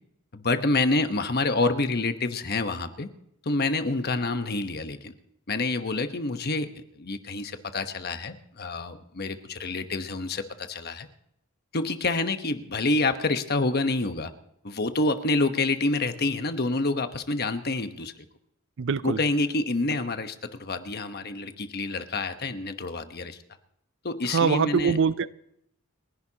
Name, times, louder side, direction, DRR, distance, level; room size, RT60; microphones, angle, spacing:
voice 1, 0.3-3.1 3.4-5.1 5.5-11.1 11.7-14.3 14.6-18.2 19.0-23.4 24.0-25.0, left 2 dB, 50° left, 1.1 m, -27 dB
voice 2, 18.8-19.2 24.3-25.3, right 6 dB, 65° right, 0.5 m, -23 dB
30.0 x 11.0 x 2.9 m
head